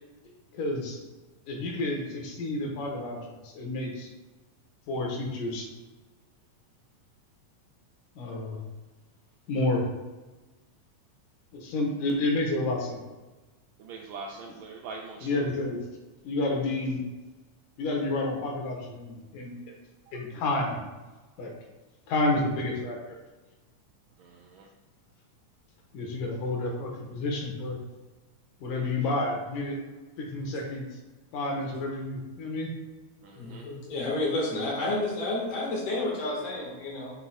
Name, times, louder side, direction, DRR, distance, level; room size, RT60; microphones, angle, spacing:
voice 1, 0.5-1.0 1.5-3.2 3.4-4.1 4.9-5.7 8.2-8.6 9.5-9.9 11.5-13.0 15.2-15.8 16.2-17.0 17.8-19.6 20.1-20.8 21.4-21.5 22.1-23.2 25.9-27.8 28.6-29.8 30.2-30.8 31.3-32.7, left 2 dB, 90° left, 0 dB, 2.7 m, -30 dB
voice 2, 13.8-15.6 20.1-20.2 24.2-24.7 33.2-33.7, right 4 dB, 80° right, 1 dB, 1.6 m, -43 dB
voice 3, 33.3-37.1, left 2 dB, 55° left, -3 dB, 2.4 m, -30 dB
8.3 x 5.9 x 2.2 m, 1.2 s
omnidirectional pair, 3.6 m